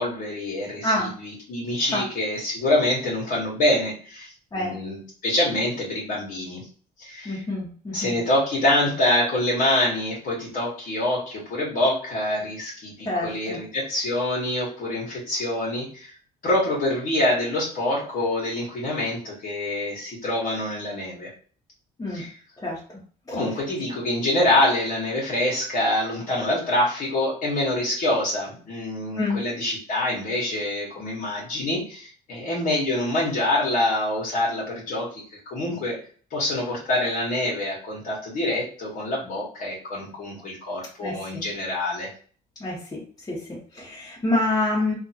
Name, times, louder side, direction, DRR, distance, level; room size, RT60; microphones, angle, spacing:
voice 1, 0.0-6.6 7.0-7.4 7.9-16.1 16.4-21.3 22.1-22.4 23.3-36.0 36.3-42.1, left 1 dB, 55° left, -4 dB, 1.3 m, -25 dB
voice 2, 7.2-8.2 13.0-13.6 22.0-22.2 22.6-22.8 23.3-23.4 29.2-29.4 41.0-41.4 42.6-43.0 43.3-44.9, left 2 dB, 20° left, -7 dB, 1.2 m, -27 dB
2.8 x 2.4 x 2.8 m, 0.43 s
cardioid pair, 110°, 17 cm